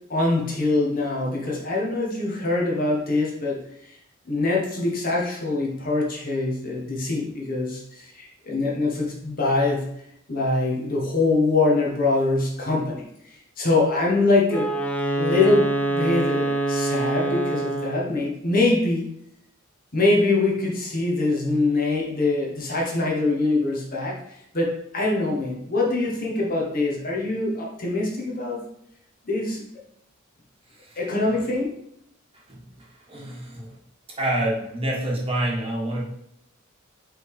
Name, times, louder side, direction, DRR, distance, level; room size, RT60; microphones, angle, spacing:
voice 1, 0.1-4.0 4.2-9.9 10.3-14.7 15.2-19.1 19.9-24.2 24.5-28.6 29.2-29.6 31.0-31.7, left 2 dB, 45° left, -2 dB, 1.5 m, -24 dB
Wind instrument woodwind instrument, 14.5-18.1, right 2 dB, 5° left, 0.6 m, -25 dB
voice 2, 32.5-33.8 34.1-36.0, right 1 dB, 30° right, -3 dB, 1.4 m, -28 dB
5.4 x 3.7 x 4.9 m, 0.75 s
head